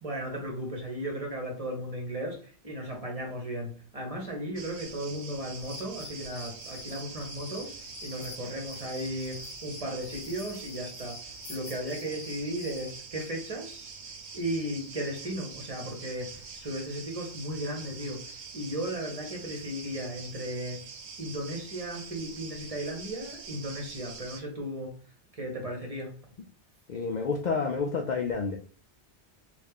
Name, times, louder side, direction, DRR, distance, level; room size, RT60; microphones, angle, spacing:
voice 1, 0.0-13.9 14.3-20.8 21.2-25.0 25.3-26.2, right 1 dB, 35° right, 0.9 m, -36 dB
sound 1, 4.6-24.4, right 5 dB, 70° right, 0.9 m, -45 dB
sound 2, 5.6-13.0, left 3 dB, 85° left, 1.1 m, -47 dB
voice 2, 26.9-28.6, left 4 dB, 60° left, 0.5 m, -29 dB
3.3 x 2.4 x 3.5 m
omnidirectional pair, 1.2 m